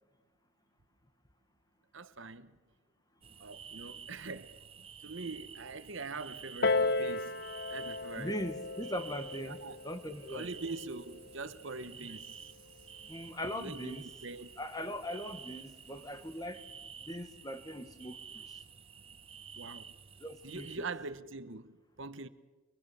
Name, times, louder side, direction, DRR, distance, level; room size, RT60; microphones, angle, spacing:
voice 1, 1.9-2.6 3.4-7.4 7.7-8.4 9.5-9.8 10.3-12.5 13.6-14.6 19.5-19.9 20.4-22.3, right 3 dB, 60° right, 1.1 m, -43 dB
sound 1, 3.2-20.8, right 7 dB, 25° right, 0.7 m, -51 dB
Piano, 6.6-11.8 12.6-12.7, left 3 dB, 45° left, 0.9 m, -35 dB
voice 2, 8.2-10.5 13.1-14.1 14.6-16.6 17.0-18.6 20.2-20.7, equal, 15° left, 1.3 m, -40 dB
25.0 x 23.0 x 7.0 m
head